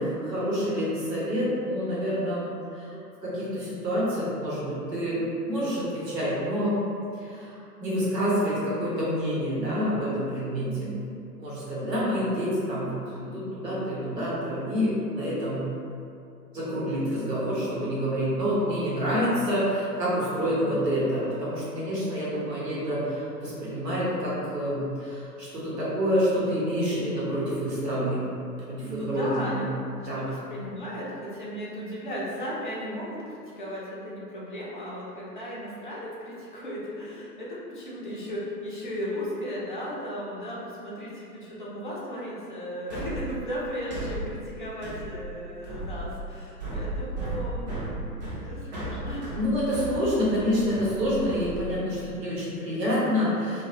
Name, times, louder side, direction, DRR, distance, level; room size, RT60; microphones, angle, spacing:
voice 1, 0.0-2.5 2.7-6.8 7.2-7.5 7.8-10.9 11.4-15.6 16.5-28.2 28.6-29.6 30.1-30.3 49.3-53.6, equal, 75° right, -8 dB, 1.1 m, -27 dB
voice 2, 10.4-11.1 20.6-20.7 28.8-29.6 30.2-49.3, equal, 35° left, -7 dB, 0.4 m, -36 dB
sound 1, 42.9-52.0, right 1 dB, 30° right, 0.4 m, -35 dB
2.3 x 2.1 x 2.8 m, 2.5 s
figure-of-eight pair, 115°, 50 cm